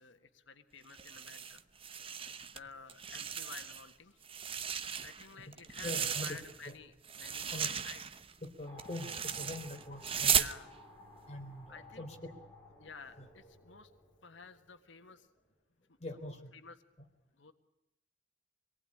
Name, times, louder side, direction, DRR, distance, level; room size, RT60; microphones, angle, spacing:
voice 1, 0.0-1.6 2.4-8.0 10.3-10.7 11.7-12.3 12.8-13.9 14.2-15.3 15.9-16.8 17.3-17.5, left 5 dB, 85° left, 7 dB, 1.6 m, -53 dB
sound 1, 0.9-2.6 2.9-3.9 4.2-6.7 7.0-10.6, right 8 dB, 30° right, 0.9 m, -36 dB
voice 2, 5.8-6.4 6.7-6.8 7.5-7.7 8.4-10.5 11.3-12.4 13.2-13.3 16.0-16.5, left 1 dB, 35° left, 3 dB, 3.9 m, -43 dB
sound 2, 8.6-15.1, left 1 dB, 15° left, 5.8 m, -56 dB
25.5 x 19.0 x 10.0 m, 0.91 s
head